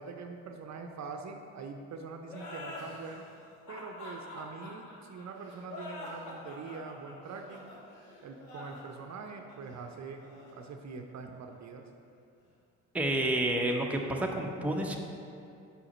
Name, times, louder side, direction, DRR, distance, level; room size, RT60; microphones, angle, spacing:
voice 1, 0.0-3.3 3.7-7.7 8.2-10.2 10.5-11.9, right 4 dB, 45° right, 4 dB, 0.6 m, -43 dB
sound 1, 2.3-11.5, left 2 dB, 75° left, 1.2 m, -46 dB
voice 2, 12.9-15.0, right 1 dB, 5° right, 1 dB, 0.6 m, -29 dB
5.1 x 4.9 x 4.9 m, 2.5 s
hypercardioid pair, 50°, 39 cm